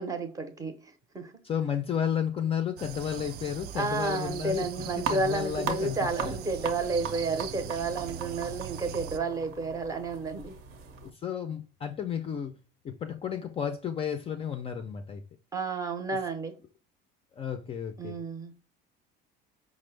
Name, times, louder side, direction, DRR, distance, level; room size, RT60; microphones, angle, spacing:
voice 1, 0.0-1.3 3.7-10.6 15.5-16.6 18.0-18.5, right 3 dB, 15° right, 0.6 m, -31 dB
voice 2, 1.4-4.7 5.0-6.4 11.0-12.5 12.8-15.2 16.1-16.2 17.3-18.2, left 8 dB, 30° left, 0.4 m, -32 dB
sound 1, 2.8-9.2, right 10 dB, 55° right, 0.4 m, -41 dB
sound 2, 5.0-11.1, right 6 dB, 75° right, 0.8 m, -39 dB
5.1 x 2.0 x 3.2 m
cardioid pair, 140°, 20 cm